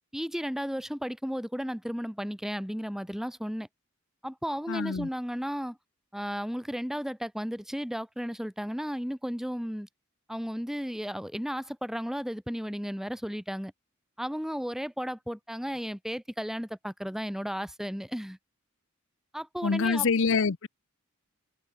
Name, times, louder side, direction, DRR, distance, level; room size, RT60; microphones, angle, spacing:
voice 1, 0.1-3.7 4.2-5.8 6.1-9.9 10.3-13.7 14.2-18.4 19.3-20.1, equal, ahead, 3.5 m, -34 dB
voice 2, 4.7-5.1 19.6-20.7, left 5 dB, 65° left, 0.7 m, -26 dB
head